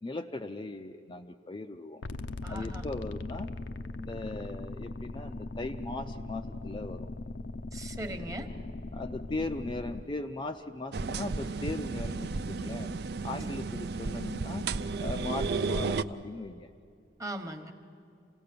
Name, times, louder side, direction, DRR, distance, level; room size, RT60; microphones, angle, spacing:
voice 1, 0.0-2.0 2.5-3.5 4.0-7.1 8.9-12.9 13.2-14.7 15.0-16.7, left 2 dB, 25° left, 6 dB, 0.4 m, -38 dB
sound 1, 2.0-10.0, left 2 dB, 90° left, 0.6 m, -39 dB
voice 2, 2.4-2.9 7.7-8.5 17.2-17.7, right 1 dB, 20° right, 6 dB, 1.1 m, -39 dB
sound 2, 10.9-16.0, right 4 dB, 60° right, 0.5 m, -33 dB
27.0 x 17.5 x 6.8 m, 2.6 s
head